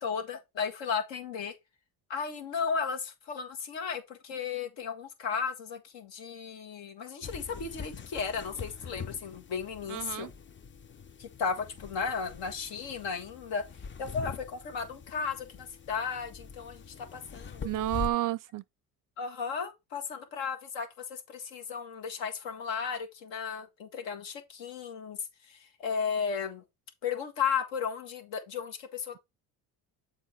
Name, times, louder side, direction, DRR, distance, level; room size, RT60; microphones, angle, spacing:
voice 1, 0.0-1.5 2.1-10.3 11.2-13.6 14.0-17.7 19.2-25.2 25.4-26.6 27.0-29.2, left 6 dB, 70° left, 1.7 m, -35 dB
sound 1, 7.2-18.1, left 5 dB, 25° left, 0.6 m, -44 dB
voice 2, 9.9-10.3 17.6-18.6, right 15 dB, 45° right, 0.4 m, -31 dB
7.4 x 3.8 x 4.4 m
hypercardioid pair, 65°, 46 cm